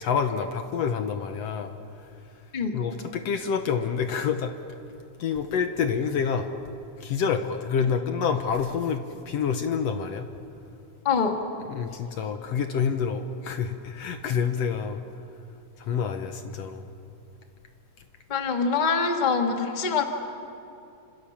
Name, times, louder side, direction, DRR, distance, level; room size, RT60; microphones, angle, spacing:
voice 1, 0.0-1.7 2.7-4.5 5.2-6.5 7.0-10.3 11.7-15.0 15.9-16.9, left 6 dB, 65° left, 7 dB, 1.9 m, -27 dB
voice 2, 11.0-11.4 18.3-20.0, left 5 dB, 20° left, 4 dB, 1.3 m, -24 dB
28.5 x 26.0 x 7.2 m, 2.6 s
omnidirectional pair, 3.4 m